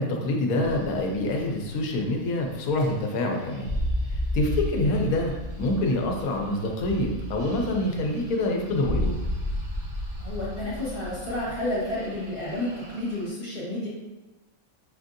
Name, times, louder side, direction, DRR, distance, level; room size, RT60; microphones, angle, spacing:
voice 1, 0.0-3.7 4.3-5.3 5.6-9.2, left 1 dB, 85° left, 1 dB, 1.2 m, -26 dB
sound 1, 0.6-13.3, left 1 dB, 55° right, 0.4 m, -34 dB
voice 2, 10.2-13.9, left 1 dB, 40° left, -8 dB, 1.6 m, -30 dB
6.3 x 2.6 x 2.5 m, 1.1 s
omnidirectional pair, 1.5 m